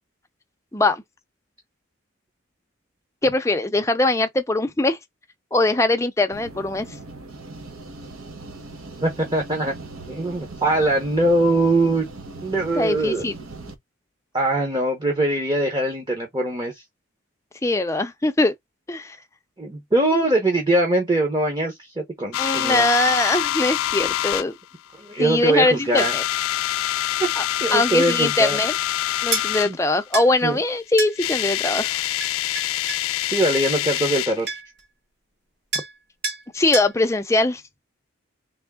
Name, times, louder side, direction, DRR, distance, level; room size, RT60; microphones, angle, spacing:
voice 1, 0.7-1.0 3.2-5.0 5.5-6.9 12.8-13.3 17.6-18.5 18.9-19.2 22.4-24.5 25.2-26.2 27.4-27.5 27.7-28.7 29.2-32.0 36.5-37.6, left 2 dB, 15° left, 0.5 m, -21 dB
sound 1, 6.3-13.8, right 2 dB, 80° right, 1.1 m, -39 dB
voice 2, 9.0-9.7 10.1-12.0 12.4-13.2 14.3-16.8 19.6-22.9 25.0-26.1 27.2-27.3 27.6-28.6 29.7-29.8 30.4-30.6 33.2-34.5, right 1 dB, 20° right, 0.9 m, -22 dB
sound 2, 22.3-24.4 25.2-25.5 25.9-29.7 30.8-30.9 31.1-34.4, left 14 dB, 85° left, 0.3 m, -25 dB
sound 3, 29.3-29.5 30.1-30.3 31.0-31.2 32.2-33.1 34.1-34.2 34.5-34.8 35.7-36.0 36.2-36.4 36.7-36.9, right 3 dB, 50° right, 1.6 m, -28 dB
3.5 x 3.1 x 3.5 m
head